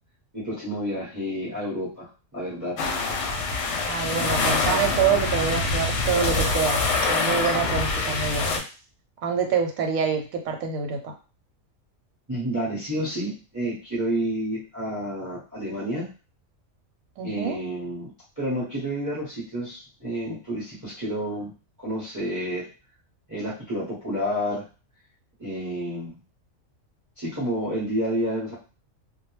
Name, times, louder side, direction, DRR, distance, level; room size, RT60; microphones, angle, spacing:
voice 1, 0.3-2.8 12.3-16.1 17.2-18.1 18.4-21.5 21.8-22.7 23.3-24.6 25.4-26.2 27.2-28.5, equal, 15° right, -6 dB, 0.7 m, -30 dB
sound 1, 2.8-8.6, left 3 dB, 65° left, 0.8 m, -25 dB
voice 2, 3.9-6.8 7.1-8.5 9.2-11.1 17.2-17.6, right 6 dB, 90° right, 3 dB, 1.0 m, -26 dB
2.3 x 2.1 x 3.0 m, 0.34 s
omnidirectional pair, 1.4 m